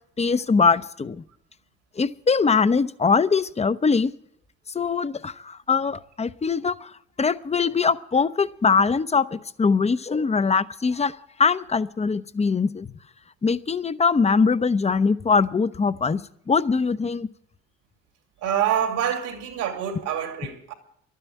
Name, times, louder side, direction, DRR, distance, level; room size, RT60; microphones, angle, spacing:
voice 1, 0.2-1.2 2.0-4.1 4.7-6.9 7.2-11.1 11.4-12.9 13.4-17.3, left 5 dB, 20° left, 0.7 m, -22 dB
voice 2, 18.4-20.7, right 9 dB, 75° right, 2.7 m, -26 dB
12.0 x 9.4 x 9.3 m
hypercardioid pair, 60°, 30 cm